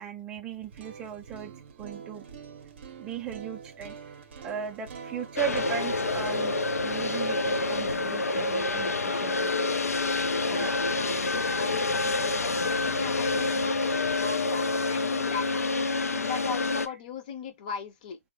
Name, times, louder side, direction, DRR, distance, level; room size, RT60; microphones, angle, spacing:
voice 1, 0.0-1.5 1.8-2.2 3.0-4.0 4.4-9.5 10.4-10.8 16.1-16.3, right 9 dB, 10° right, 0.3 m, -37 dB
sound 1, 0.5-10.6, right 6 dB, 45° right, 0.6 m, -46 dB
sound 2, 5.4-16.9, left 3 dB, 90° left, 0.5 m, -27 dB
voice 2, 10.3-18.2, left 6 dB, 35° left, 0.7 m, -38 dB
3.8 x 2.0 x 3.0 m
hypercardioid pair, 150°, 8 cm